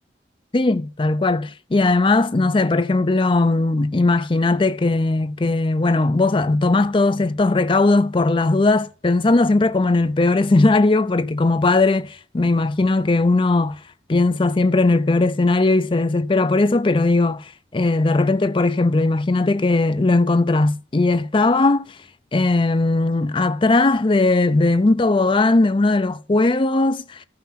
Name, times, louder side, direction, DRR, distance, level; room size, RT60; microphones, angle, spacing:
voice 1, 0.5-13.8 14.1-21.8 22.3-27.2, left 2 dB, 30° left, 0.5 m, -18 dB
14.0 x 5.8 x 5.7 m
head